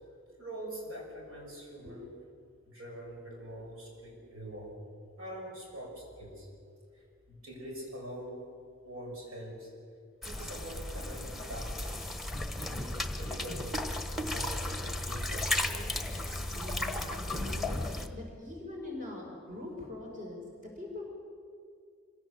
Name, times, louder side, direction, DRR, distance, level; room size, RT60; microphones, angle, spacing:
voice 1, 0.3-2.1 2.6-4.8 5.2-6.5 6.9-8.4 8.8-9.7 10.2-13.8 14.0-15.5, right 1 dB, 90° right, -1 dB, 6.5 m, -44 dB
sound 1, 10.2-18.1, left 1 dB, ahead, 1.2 m, -35 dB
voice 2, 16.5-21.1, left 2 dB, 40° right, 0 dB, 4.2 m, -43 dB
25.0 x 17.0 x 7.5 m, 2.2 s
head